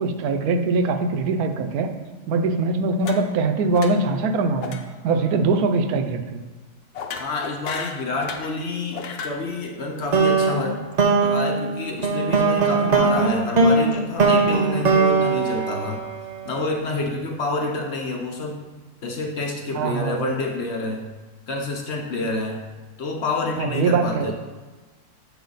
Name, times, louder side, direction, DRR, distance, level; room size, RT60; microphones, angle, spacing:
voice 1, 0.0-1.9 2.3-4.8 5.0-6.4 19.7-20.3 23.6-24.3, right 3 dB, 80° right, 8 dB, 1.1 m, -22 dB
sound 1, 3.0-3.5 3.7-4.2 4.6-4.8 5.1-5.4 7.0-8.5 8.9-9.4, left 6 dB, 75° left, 1.1 m, -34 dB
voice 2, 7.2-10.8 11.2-16.0 16.4-18.6 19.0-21.0 21.5-22.6 23.0-24.3, left 2 dB, 55° left, 1 dB, 0.9 m, -28 dB
sound 2, 10.1-16.5, right 4 dB, 60° right, 0.4 m, -20 dB
7.1 x 4.8 x 3.9 m, 1.3 s
omnidirectional pair, 1.6 m